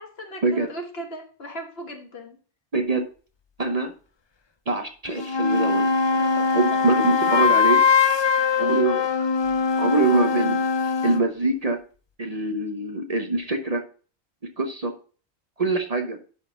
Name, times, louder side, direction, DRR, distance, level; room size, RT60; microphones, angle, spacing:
voice 1, 0.0-2.4 6.1-6.9, equal, 60° left, 3 dB, 1.7 m, -38 dB
voice 2, 2.7-3.1 3.6-3.9 4.7-5.9 6.2-7.8 8.6-9.3 9.8-10.6 11.0-11.8 12.2-13.8 14.6-14.9 15.6-16.2, right 3 dB, 35° right, 4 dB, 1.0 m, -24 dB
sound 1, 5.1-11.3, left 5 dB, 40° left, 0.4 m, -21 dB
11.0 x 4.2 x 3.9 m, 0.38 s
omnidirectional pair, 1.2 m